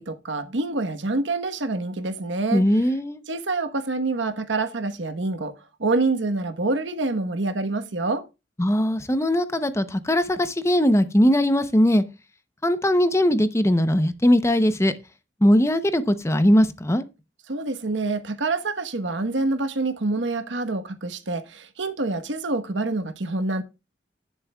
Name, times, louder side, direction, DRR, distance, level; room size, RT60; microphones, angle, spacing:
voice 1, 0.0-2.6 3.3-5.5 5.8-8.2 17.5-23.6, right 3 dB, 90° right, 1.1 m, -26 dB
voice 2, 2.5-3.2 8.6-12.0 12.6-14.9 15.4-17.0, equal, 15° left, 0.7 m, -20 dB
17.0 x 7.3 x 2.3 m
head